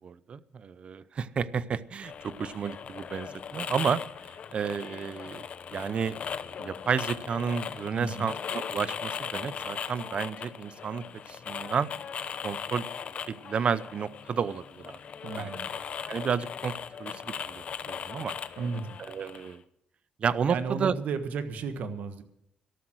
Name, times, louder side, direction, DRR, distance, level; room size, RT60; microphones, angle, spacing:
voice 1, 0.0-4.0 4.5-5.4 5.7-6.2 6.6-11.9 12.4-12.8 13.3-15.0 15.4-15.5 16.1-16.7 17.0-18.3 19.1-19.6 20.2-20.9, right 6 dB, 40° right, 18 dB, 0.6 m, -31 dB
sound 1, 2.0-19.6, left 7 dB, 45° left, 0.8 m, -38 dB
voice 2, 7.9-8.3 15.2-15.7 18.6-19.0 20.5-22.2, right 4 dB, 65° right, 9 dB, 1.5 m, -34 dB
13.5 x 12.5 x 6.3 m, 0.79 s
cardioid pair, 135°, 3 cm